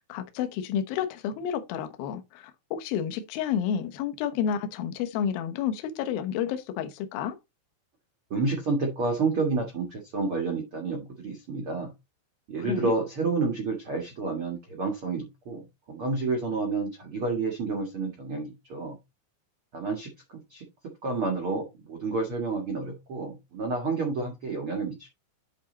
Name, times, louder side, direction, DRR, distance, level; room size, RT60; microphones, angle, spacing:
voice 1, 0.1-7.4 12.6-12.9, left 8 dB, 75° left, 2.2 m, -30 dB
voice 2, 8.3-11.9 12.5-19.0 19.7-25.1, right 3 dB, 80° right, 1.2 m, -30 dB
10.0 x 4.3 x 4.0 m
omnidirectional pair, 5.7 m